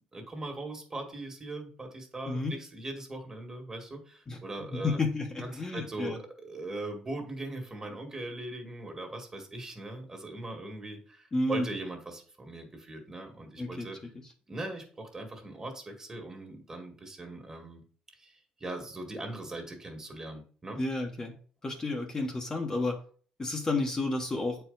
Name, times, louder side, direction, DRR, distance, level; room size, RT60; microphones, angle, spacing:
voice 1, 0.1-5.0 5.4-14.0 14.5-17.8 18.2-20.8, right 2 dB, 25° right, 3 dB, 2.0 m, -40 dB
voice 2, 4.7-6.2 11.3-11.7 13.6-13.9 20.8-23.0 23.4-24.6, left 2 dB, 25° left, 1 dB, 1.2 m, -31 dB
7.8 x 4.6 x 4.0 m, 0.43 s
cardioid pair, 95°, 2 cm